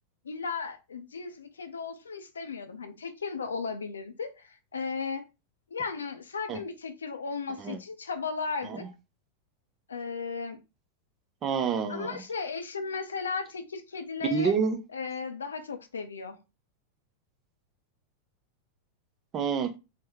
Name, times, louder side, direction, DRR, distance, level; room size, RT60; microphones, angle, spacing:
voice 1, 0.2-5.2 5.7-8.8 9.9-10.6 11.9-14.5 14.9-16.4, left 5 dB, 70° left, 0.5 m, -35 dB
voice 2, 11.4-12.2 14.3-14.8 19.3-19.8, right 6 dB, 30° right, 0.5 m, -28 dB
3.3 x 2.1 x 3.0 m
figure-of-eight pair, 90°, 0 cm